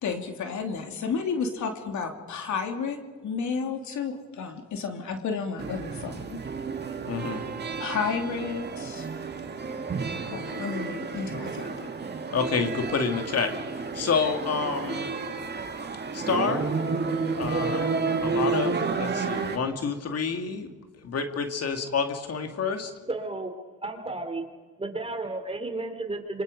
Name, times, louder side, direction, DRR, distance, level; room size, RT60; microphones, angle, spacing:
voice 1, 0.0-6.4 7.8-9.1 10.2-11.9, left 5 dB, 70° left, 4 dB, 3.1 m, -32 dB
sound 1, 5.6-19.6, right 4 dB, 35° right, 2.3 m, -31 dB
voice 2, 7.1-7.4 12.3-15.1 16.1-16.7 17.3-17.9 18.2-20.8 21.0-22.9, left 5 dB, 55° left, 5 dB, 2.4 m, -28 dB
voice 3, 23.1-23.5 23.8-24.4 24.8-26.4, right 2 dB, 20° right, 6 dB, 3.7 m, -32 dB
27.5 x 25.5 x 5.3 m, 1.3 s
cardioid pair, 90°, 30 cm